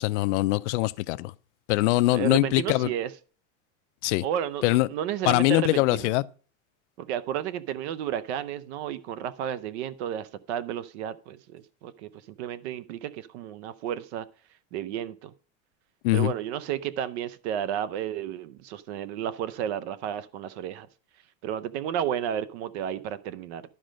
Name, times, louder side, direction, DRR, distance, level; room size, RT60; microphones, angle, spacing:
voice 1, 0.0-1.3 1.7-2.9 4.0-4.2 4.6-4.9 5.2-6.2 16.0-16.3, left 19 dB, 60° left, 0.5 m, -23 dB
voice 2, 2.1-3.1 4.2-6.1 7.0-12.1 12.4-14.3 14.7-15.3 16.1-20.9 21.4-23.6, right 10 dB, 55° right, 0.7 m, -32 dB
12.5 x 5.1 x 6.3 m
supercardioid pair, 180°, 40 cm